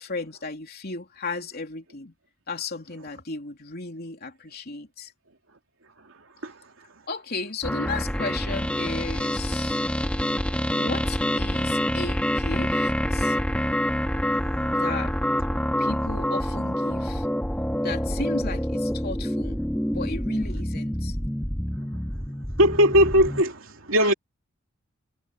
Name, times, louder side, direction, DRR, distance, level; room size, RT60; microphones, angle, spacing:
voice 1, 0.0-2.1 2.5-5.1 7.1-9.8 10.7-13.4 14.7-15.2 15.8-17.3 17.8-19.6 19.9-21.2, left 3 dB, 50° left, 3.3 m, -35 dB
sound 1, 7.6-23.4, equal, 5° left, 1.9 m, -27 dB
voice 2, 22.6-24.1, equal, 70° right, 3.1 m, -19 dB
head